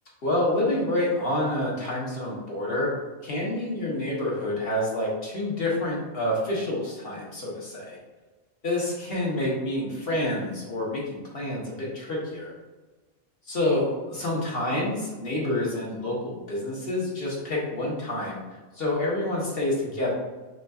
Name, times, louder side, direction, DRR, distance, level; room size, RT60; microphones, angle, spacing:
voice 1, 0.2-2.9 3.2-8.0 8.6-12.5 13.5-18.4 18.7-20.1, left 1 dB, 50° left, -4 dB, 1.4 m, -28 dB
5.9 x 2.8 x 2.4 m, 1.3 s
omnidirectional pair, 1.3 m